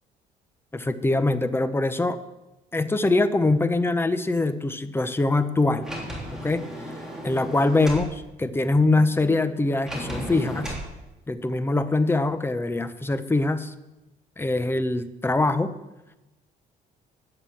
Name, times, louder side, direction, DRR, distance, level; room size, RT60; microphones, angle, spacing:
voice 1, 0.7-2.2 2.7-5.9 6.3-6.6 7.2-10.7 11.3-13.7 14.4-15.7, left 2 dB, 15° left, 12 dB, 0.8 m, -23 dB
Sliding door, 5.8-8.1 9.9-10.9, equal, 5° right, 3.2 m, -34 dB
11.0 x 8.1 x 7.1 m, 1.0 s
cardioid pair, 110°, 17 cm